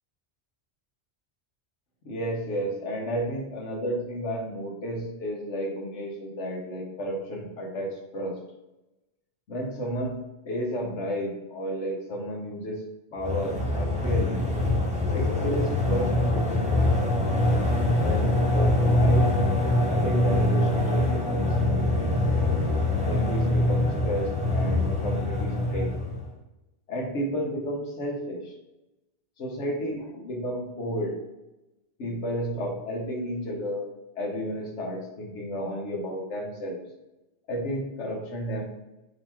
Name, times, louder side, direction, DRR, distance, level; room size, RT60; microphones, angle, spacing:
voice 1, 2.0-8.4 9.5-12.8 13.1-14.5 15.1-17.2 18.0-19.4 19.9-22.2 23.1-25.9 26.9-28.5 29.4-31.2 32.0-33.9 34.1-36.8 37.5-38.6, equal, 80° left, 0 dB, 1.3 m, -32 dB
sound 1, 13.2-26.3, left 1 dB, 5° right, 0.7 m, -24 dB
4.1 x 2.9 x 4.2 m, 0.98 s
omnidirectional pair, 1.2 m